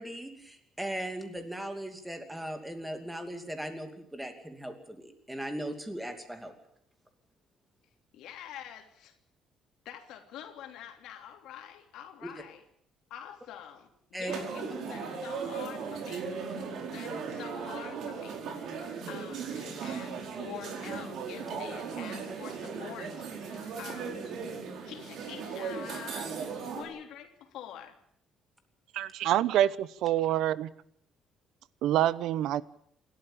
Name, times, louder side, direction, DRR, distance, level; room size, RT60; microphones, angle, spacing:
voice 1, 0.0-6.5 12.2-12.3 14.1-14.4, right 1 dB, 5° right, 2.7 m, -38 dB
voice 2, 8.1-9.1 9.8-12.6 13.1-24.3 24.8-26.4 26.7-28.0, left 10 dB, 75° left, 3.2 m, -46 dB
sound 1, 14.3-26.8, right 5 dB, 60° right, 4.7 m, -37 dB
voice 3, 28.9-30.7 31.8-32.6, right 12 dB, 75° right, 0.9 m, -26 dB
27.5 x 13.0 x 8.8 m
cardioid pair, 165°, 0 cm